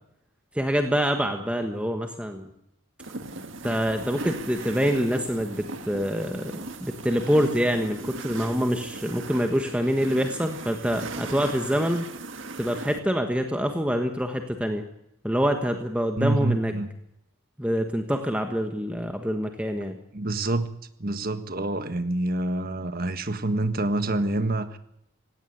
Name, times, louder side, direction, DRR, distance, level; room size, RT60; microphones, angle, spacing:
voice 1, 0.5-2.5 3.6-12.1 12.6-14.8 15.2-16.7 17.6-20.0, equal, 5° right, 5 dB, 1.4 m, -26 dB
sound 1, 3.0-13.0, right 3 dB, 60° right, 1.8 m, -38 dB
voice 2, 16.2-16.9 20.1-20.7 21.0-24.8, right 2 dB, 45° right, 10 dB, 1.5 m, -27 dB
17.5 x 16.5 x 9.4 m, 0.76 s
head